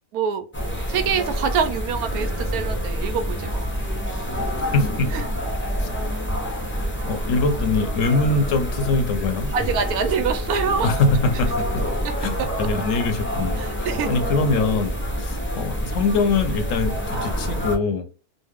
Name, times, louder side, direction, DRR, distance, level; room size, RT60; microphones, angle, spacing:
voice 1, 0.1-0.5 0.9-3.7 5.1-5.2 9.5-10.9 13.6-14.1, right 6 dB, 80° right, 1.1 m, -25 dB
sound 1, 0.5-17.8, equal, 20° left, 0.3 m, -27 dB
voice 2, 4.6-5.1 5.8-5.9 6.7-9.5 10.8-11.8 12.2-18.1, left 3 dB, 70° left, 0.9 m, -23 dB
3.1 x 2.0 x 3.4 m
omnidirectional pair, 1.5 m